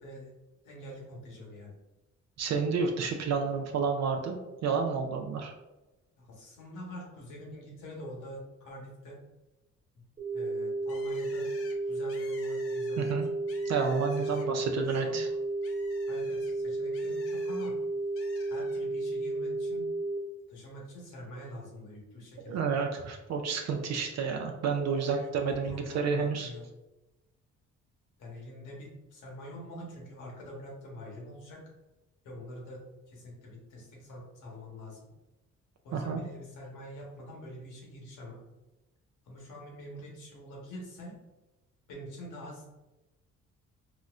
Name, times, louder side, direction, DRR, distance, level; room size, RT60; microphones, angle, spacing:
voice 1, 0.0-0.3 0.6-1.7 6.2-9.2 10.3-11.5 11.8-13.2 14.3-15.4 16.1-17.8 18.5-19.8 20.5-22.6 24.9-26.7 28.2-31.6 32.2-35.0 35.8-38.4 39.2-41.2 41.9-42.7, equal, 85° left, -2 dB, 1.2 m, -45 dB
voice 2, 2.4-5.5 13.0-13.3 13.7-15.3 22.5-26.5 35.9-36.2, right 5 dB, 60° right, 3 dB, 0.4 m, -30 dB
sound 1, 10.2-20.2, right 2 dB, 20° right, 0.8 m, -32 dB
Bird, 10.9-14.7 15.1-17.7 18.2-18.8, left 4 dB, 50° left, 0.6 m, -52 dB
3.9 x 2.1 x 2.4 m, 1.0 s
cardioid pair, 90°, 30 cm